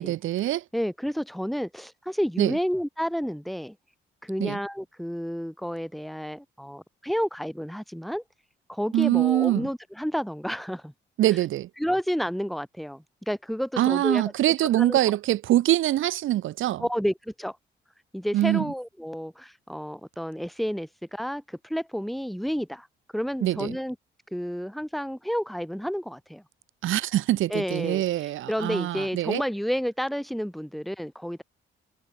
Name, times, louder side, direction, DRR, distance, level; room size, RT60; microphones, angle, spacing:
voice 1, 0.0-0.6 2.4-2.6 4.4-4.6 8.9-9.7 11.2-11.7 13.8-16.8 18.3-18.7 23.4-23.8 26.8-29.4, right 14 dB, 85° right, 4.0 m, -24 dB
voice 2, 0.7-3.8 4.2-8.2 8.7-10.9 11.8-14.2 14.6-15.0 16.8-17.6 18.1-22.9 23.1-24.0 24.3-26.4 27.5-31.4, equal, ahead, 5.2 m, -30 dB
cardioid pair, 90°, 20 cm